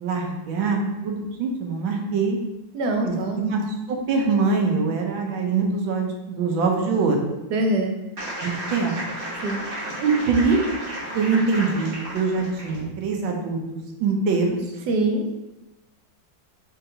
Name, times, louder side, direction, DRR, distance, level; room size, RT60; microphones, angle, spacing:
voice 1, 0.0-2.4 3.0-3.6 3.9-7.2 8.4-8.9 10.0-10.6 11.1-14.6, right 4 dB, 85° right, 1 dB, 1.5 m, -23 dB
voice 2, 2.7-3.4 7.5-8.0 9.4-9.6 14.9-15.2, right 2 dB, 70° right, 3 dB, 1.1 m, -23 dB
sound 1, 8.2-12.9, right 1 dB, 30° right, 1.3 m, -33 dB
4.5 x 4.0 x 2.8 m, 1.0 s
omnidirectional pair, 2.1 m